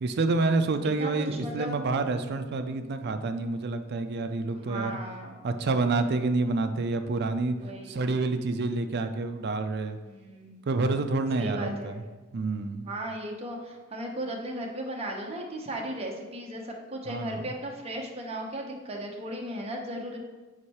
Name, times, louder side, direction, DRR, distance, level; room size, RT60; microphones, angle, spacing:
voice 1, 0.0-5.0 5.4-7.6 7.9-10.0 10.7-11.9 12.3-12.9 17.1-17.4, right 3 dB, 55° right, 8 dB, 0.4 m, -28 dB
voice 2, 1.0-1.8 4.7-5.4 7.6-8.1 10.1-10.7 11.3-12.0 12.8-20.2, right 1 dB, 30° right, 0 dB, 0.8 m, -36 dB
4.9 x 4.5 x 4.2 m, 1.2 s
head